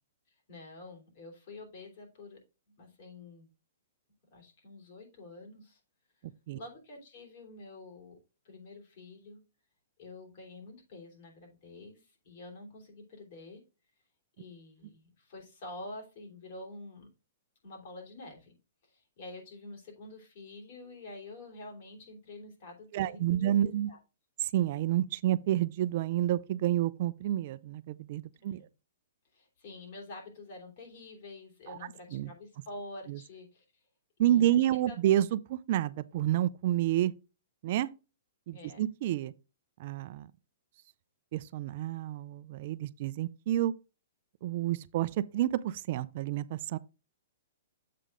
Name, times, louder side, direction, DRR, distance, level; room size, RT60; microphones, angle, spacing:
voice 1, 0.5-2.4 2.8-3.5 4.3-5.8 6.5-8.2 8.4-9.4 10.0-13.6 14.4-17.1 17.6-18.6 18.8-24.0 28.5-28.6 29.3-33.8 34.2-35.0 38.5-38.8, left 2 dB, 50° left, 3.2 m, -48 dB
voice 2, 22.9-23.9 24.4-28.6 31.7-31.8 32.1-32.3 33.1-33.2 34.2-37.1 37.6-37.9 38.5-39.3 39.8-40.3 41.3-43.7 44.4-46.8, right 12 dB, 45° right, 0.4 m, -29 dB
7.6 x 5.1 x 3.7 m
hypercardioid pair, 155°, 0 cm